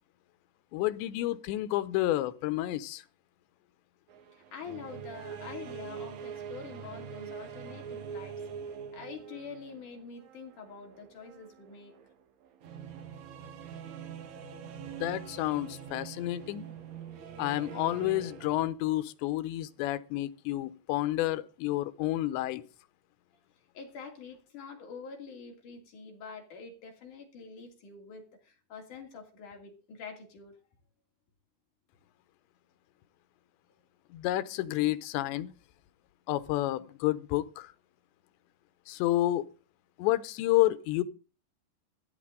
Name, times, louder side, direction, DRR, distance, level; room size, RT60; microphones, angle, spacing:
voice 1, 0.7-3.0 14.9-16.7 17.4-22.6 34.1-35.5 36.3-37.7 38.9-39.5 40.0-41.0, left 15 dB, 90° left, 3.1 m, -30 dB
sound 1, 4.1-18.7, right 7 dB, 65° right, 1.9 m, -44 dB
voice 2, 4.5-8.4 8.9-11.9 23.7-30.5, left 5 dB, 50° left, 3.8 m, -46 dB
14.5 x 12.5 x 3.8 m
omnidirectional pair, 5.1 m